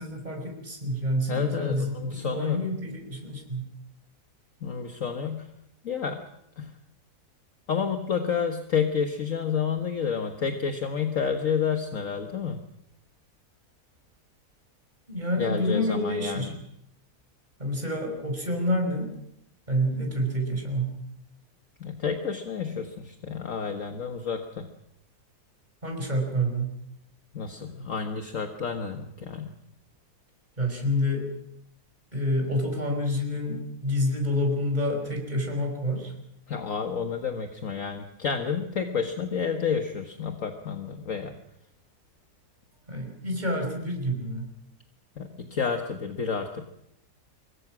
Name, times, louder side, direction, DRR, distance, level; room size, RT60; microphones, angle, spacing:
voice 1, 0.0-3.7 15.1-16.5 17.6-19.1 19.7-21.0 25.8-26.7 30.6-31.3 32.1-36.1 42.9-44.5, equal, 25° right, 2 dB, 5.4 m, -28 dB
voice 2, 1.3-2.6 4.6-5.5 5.8-6.2 6.6-6.7 7.7-12.6 15.4-16.6 21.8-24.7 27.3-29.5 36.5-41.4 45.2-46.7, left 6 dB, 55° left, 5 dB, 1.8 m, -30 dB
25.5 x 23.0 x 6.2 m, 0.79 s
omnidirectional pair, 1.7 m